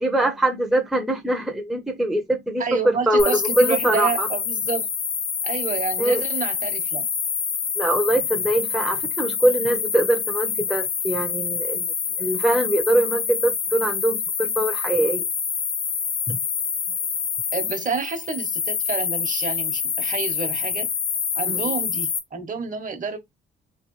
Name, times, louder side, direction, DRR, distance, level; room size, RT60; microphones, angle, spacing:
voice 1, 0.0-4.3 6.0-6.2 7.8-11.9 12.2-15.3 16.3-16.4 21.5-21.6, right 1 dB, ahead, 0.8 m, -23 dB
voice 2, 2.6-4.9 5.4-7.0 17.5-20.9 21.4-23.2, right 5 dB, 40° right, 1.1 m, -29 dB
sound 1, 3.2-22.2, left 7 dB, 85° left, 1.1 m, -26 dB
3.2 x 3.0 x 3.1 m
cardioid pair, 90°, 20 cm